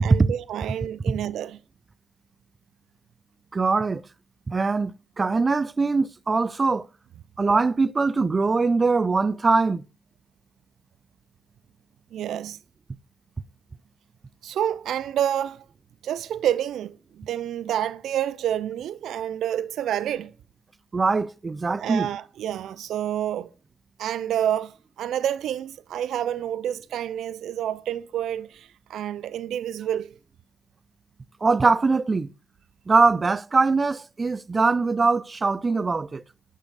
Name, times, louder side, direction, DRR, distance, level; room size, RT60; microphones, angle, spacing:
voice 1, 0.0-1.6 12.1-12.6 14.4-15.7 16.0-20.3 21.8-23.5 24.0-30.2, right 10 dB, 80° right, 0.6 m, -28 dB
voice 2, 3.5-4.0 4.5-6.9 7.4-9.8 20.9-22.1 31.4-32.3 32.9-36.2, right 4 dB, 40° right, 0.6 m, -22 dB
11.5 x 5.6 x 6.4 m
supercardioid pair, 50°, 0 cm